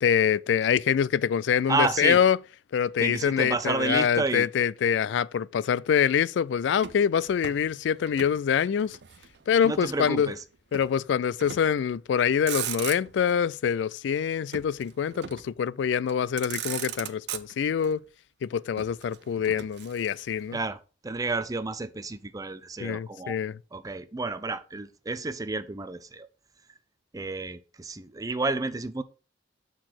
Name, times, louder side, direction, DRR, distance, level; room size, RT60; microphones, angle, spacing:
voice 1, 0.0-2.4 2.7-9.0 9.5-10.3 10.7-18.0 18.4-20.6 22.8-23.6, left 8 dB, 75° left, 0.3 m, -25 dB
voice 2, 1.7-2.2 3.0-4.5 9.6-10.4 20.5-23.4 23.7-26.3 27.1-29.0, right 3 dB, 20° right, 0.5 m, -30 dB
Motor vehicle (road), 6.8-8.4 8.7-9.7 10.7-11.0 11.4-11.8 12.3-13.3 14.5-15.6 16.1-16.2 16.4-17.9 18.8-20.4, right 10 dB, 65° right, 0.6 m, -38 dB
6.7 x 4.0 x 5.8 m
head